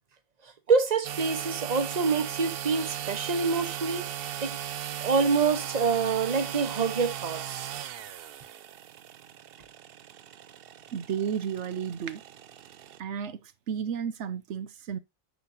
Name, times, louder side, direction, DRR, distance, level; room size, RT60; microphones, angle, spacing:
voice 1, 0.7-4.1 4.4-4.6 5.0-7.6, right 5 dB, 40° right, 1.2 m, -26 dB
sound 1, 1.0-13.0, right 10 dB, 60° right, 0.7 m, -38 dB
voice 2, 10.9-12.2 13.0-13.4 13.7-15.0, right 8 dB, 85° right, 1.1 m, -32 dB
8.3 x 6.4 x 2.7 m
omnidirectional pair, 1.2 m